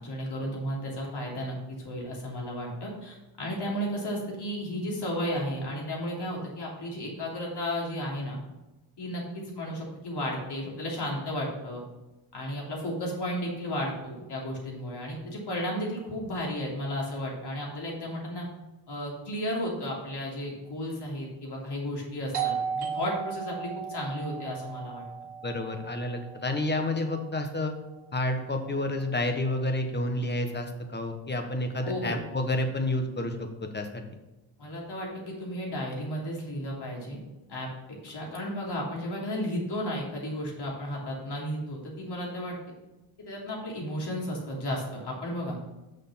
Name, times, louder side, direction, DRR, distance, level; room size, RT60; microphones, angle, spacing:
voice 1, 0.0-8.4 9.0-11.8 12.3-18.4 18.9-25.0 31.8-32.2 34.6-37.2 37.5-42.6 43.2-45.6, equal, 55° left, -3 dB, 3.1 m, -33 dB
Doorbell, 22.3-27.7, right 7 dB, 55° right, 1.4 m, -36 dB
voice 2, 25.4-27.7 28.1-33.5 33.7-34.0, left 1 dB, 20° left, 5 dB, 1.2 m, -29 dB
6.6 x 6.3 x 5.6 m, 1.0 s
cardioid pair, 110°, 47 cm